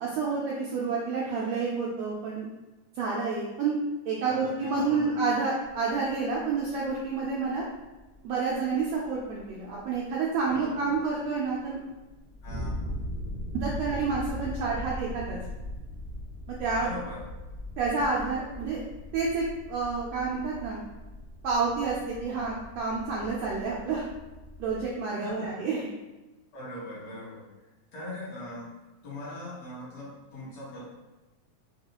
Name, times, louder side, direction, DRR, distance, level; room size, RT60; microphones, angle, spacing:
voice 1, 0.0-2.5 2.9-3.8 4.0-7.6 8.2-11.8 13.5-15.4 16.6-16.9 17.8-18.8 19.1-20.8 21.4-24.0 24.6-25.9, right 4 dB, 80° right, -4 dB, 1.5 m, -29 dB
voice 2, 4.2-5.2 10.5-11.0 12.4-12.9 16.8-17.2 25.2-25.5 26.5-27.4 27.9-28.7 29.0-30.8, left 1 dB, 65° left, -8 dB, 2.1 m, -40 dB
sound 1, 5.6-24.9, left 1 dB, 35° left, 0.7 m, -40 dB
5.3 x 2.4 x 2.8 m, 1.1 s
omnidirectional pair, 3.5 m